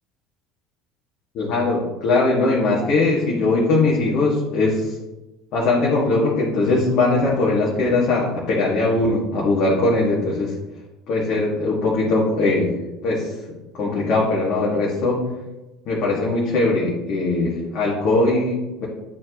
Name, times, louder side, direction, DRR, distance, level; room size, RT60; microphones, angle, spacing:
voice 1, 1.3-5.0 5.5-10.5 11.1-12.7 13.0-13.3 13.8-15.2 15.8-18.9, left 2 dB, 50° left, -5 dB, 1.7 m, -20 dB
10.5 x 4.5 x 3.0 m, 1.0 s
figure-of-eight pair, 65°, 0 cm